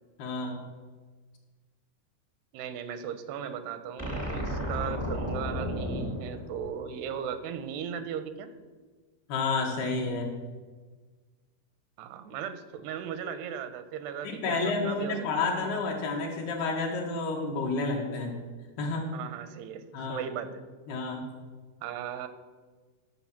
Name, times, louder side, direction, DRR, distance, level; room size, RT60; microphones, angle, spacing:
voice 1, 0.2-0.6 9.3-10.3 14.2-18.3 18.8-19.1 19.9-20.2 20.9-21.2, left 3 dB, 75° left, 0 dB, 3.7 m, -30 dB
voice 2, 2.5-8.5 12.0-15.2 19.1-20.6 21.8-22.3, right 8 dB, 85° right, 11 dB, 2.8 m, -37 dB
sound 1, 4.0-7.3, equal, 15° left, 0.5 m, -33 dB
13.0 x 6.2 x 7.3 m, 1.4 s
omnidirectional pair, 4.6 m